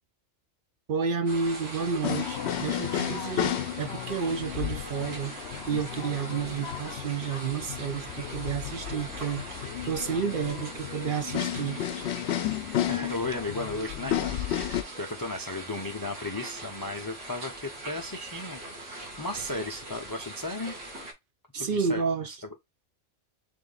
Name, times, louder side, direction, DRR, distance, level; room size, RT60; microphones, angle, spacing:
voice 1, 0.9-5.4 5.7-11.9 21.5-22.3, right 6 dB, 55° right, 0.7 m, -31 dB
sound 1, 1.3-21.1, right 1 dB, 90° right, 1.8 m, -42 dB
sound 2, 2.0-14.8, left 11 dB, 70° left, 0.8 m, -33 dB
voice 2, 12.9-20.7 21.5-22.6, left 2 dB, 35° left, 0.3 m, -35 dB
3.6 x 3.1 x 3.8 m
omnidirectional pair, 1.2 m